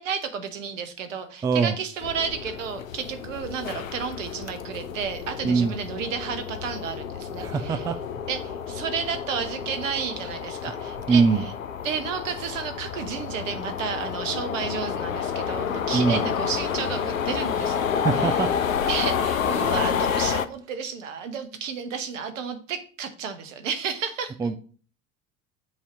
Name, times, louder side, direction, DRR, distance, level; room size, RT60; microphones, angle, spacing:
voice 1, 0.0-7.9 8.3-11.5 11.8-17.8 18.1-18.4 18.9-24.3, right 6 dB, 70° right, 1.1 m, -32 dB
voice 2, 1.4-1.8 5.4-5.8 7.4-8.0 11.1-11.4 15.9-16.2 18.0-18.5 24.4-24.6, right 5 dB, 10° right, 0.3 m, -22 dB
sound 1, 2.0-20.5, left 7 dB, 80° left, 0.5 m, -29 dB
7.3 x 2.8 x 5.8 m
figure-of-eight pair, 65°, 40 cm